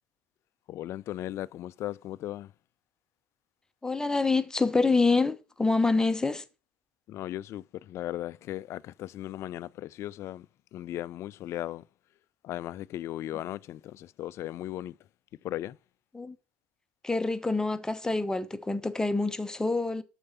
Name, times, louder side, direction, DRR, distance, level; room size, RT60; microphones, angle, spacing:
voice 1, 0.7-2.5 7.1-10.5 10.7-11.8 12.4-15.0 15.4-15.8, left 13 dB, 50° left, 0.4 m, -37 dB
voice 2, 3.8-6.4 16.1-16.3 17.0-20.0, left 3 dB, 10° left, 0.9 m, -26 dB
6.6 x 5.0 x 5.5 m
hypercardioid pair, 70°, 6 cm